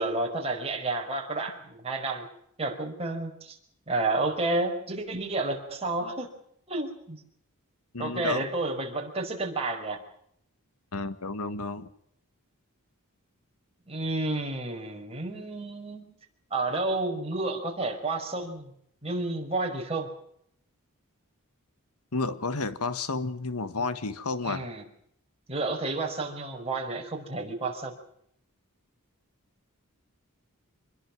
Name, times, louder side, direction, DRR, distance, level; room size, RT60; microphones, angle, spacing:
voice 1, 0.0-2.3 2.6-3.6 3.9-6.3 6.7-7.2 8.0-10.0 13.9-16.1 16.5-18.7 19.0-20.1 24.4-24.8 25.5-27.9, right 2 dB, 25° right, 5.3 m, -30 dB
voice 2, 7.9-8.5 10.9-11.9 22.1-24.7, left 3 dB, 80° left, 1.5 m, -31 dB
26.5 x 21.5 x 6.2 m
head